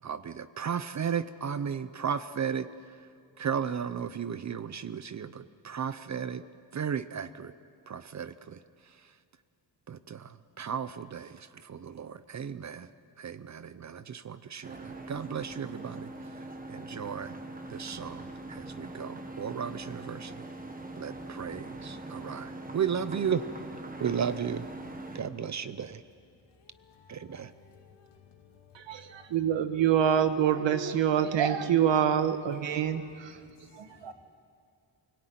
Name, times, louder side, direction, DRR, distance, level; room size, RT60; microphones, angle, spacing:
voice 1, 0.0-3.1 3.4-6.4 6.7-7.5 7.9-9.2 9.9-12.9 13.2-17.4 17.7-20.5 21.0-23.5 24.0-24.7 25.1-26.0 27.1-27.5, right 7 dB, 40° right, 0.6 m, -35 dB
sound 1, 14.6-25.2, right 2 dB, 20° right, 1.4 m, -42 dB
voice 2, 26.9-27.2 27.9-28.5 33.3-33.6 33.9-34.1, left 5 dB, 65° left, 2.6 m, -58 dB
voice 3, 29.3-33.4 33.7-34.1, right 9 dB, 80° right, 1.5 m, -26 dB
24.5 x 18.0 x 9.3 m
wide cardioid pair, 180°, 43 cm